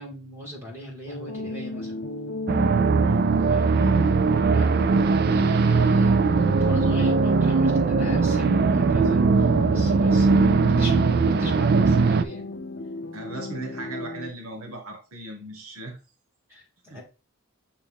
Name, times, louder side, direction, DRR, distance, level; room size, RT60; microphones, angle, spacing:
voice 1, 0.0-2.1 3.5-4.7 5.3-12.5 16.5-17.0, left 1 dB, 10° right, -3 dB, 2.3 m, -40 dB
sound 1, 1.1-14.3, left 2 dB, 50° left, 0.8 m, -35 dB
sound 2, 2.5-12.2, right 4 dB, 45° right, 0.3 m, -20 dB
voice 2, 3.0-3.3 13.1-16.0 16.9-17.0, right 2 dB, 80° right, 3 dB, 1.4 m, -38 dB
8.6 x 3.4 x 3.5 m, 0.31 s
head